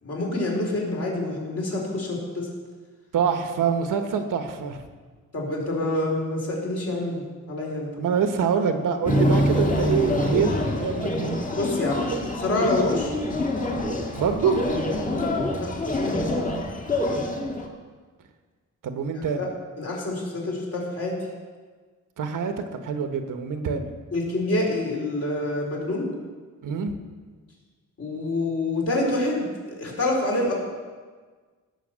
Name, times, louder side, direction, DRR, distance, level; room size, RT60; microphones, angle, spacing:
voice 1, 0.0-2.5 5.3-7.9 11.6-12.0 12.4-13.1 15.6-16.5 19.1-19.5 19.8-21.1 24.1-26.1 28.0-30.5, left 2 dB, 50° left, -2 dB, 4.2 m, -27 dB
voice 2, 3.1-4.8 8.0-11.4 12.1-12.2 14.1-14.6 18.8-19.5 22.2-23.9 26.6-26.9, right 6 dB, 90° right, 7 dB, 1.3 m, -25 dB
sound 1, 9.1-17.7, left 1 dB, 25° left, 1.8 m, -26 dB
17.0 x 6.0 x 7.4 m, 1.5 s
wide cardioid pair, 130°, 31 cm